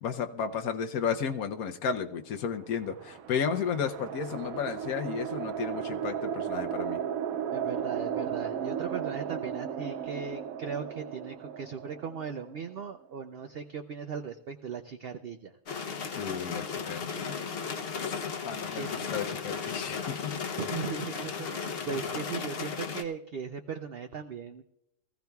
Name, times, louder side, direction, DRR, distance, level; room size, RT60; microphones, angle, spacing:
voice 1, 0.0-7.0 16.1-17.5 18.0-18.1 18.4-20.4, left 7 dB, 85° left, 5 dB, 1.2 m, -33 dB
sound 1, 2.6-13.1, right 8 dB, 75° right, 1.0 m, -35 dB
voice 2, 7.5-15.6 18.7-19.1 20.6-24.6, right 6 dB, 55° right, 6 dB, 0.7 m, -38 dB
sound 2, 15.7-23.0, left 6 dB, 50° left, 0.9 m, -35 dB
22.5 x 15.0 x 2.3 m, 0.81 s
omnidirectional pair, 1.5 m